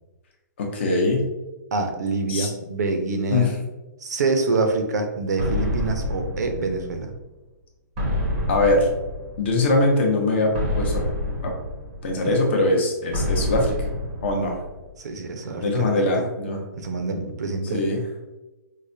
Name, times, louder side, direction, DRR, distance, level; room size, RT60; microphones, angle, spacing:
voice 1, 0.6-1.2 2.3-2.5 3.3-3.5 8.5-8.9 9.4-11.0 11.4-11.5 12.0-13.7 14.2-14.6 15.6-16.6 17.7-18.0, left 2 dB, 35° left, 0 dB, 0.7 m, -22 dB
voice 2, 1.7-3.6 4.0-7.1 12.2-12.4 15.0-16.3 16.7-17.8, right 3 dB, 60° right, 5 dB, 0.6 m, -26 dB
sound 1, 5.4-7.2 8.0-9.7 10.5-12.3 13.1-14.9, left 1 dB, 20° right, 0.6 m, -27 dB
4.7 x 2.1 x 2.6 m, 1.1 s
hypercardioid pair, 175°, 10 cm